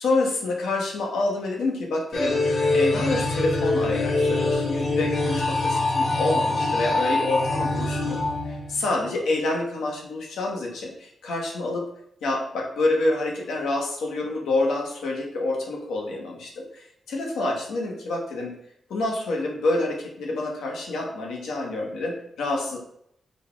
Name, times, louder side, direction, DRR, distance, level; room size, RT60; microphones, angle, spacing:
voice 1, 0.0-11.9 12.2-18.6 18.9-22.8, left 2 dB, 90° left, 0 dB, 0.9 m, -27 dB
sound 1, 2.1-9.1, left 2 dB, 65° left, 1.1 m, -24 dB
3.9 x 2.3 x 3.7 m, 0.72 s
cardioid pair, 60°, 0 cm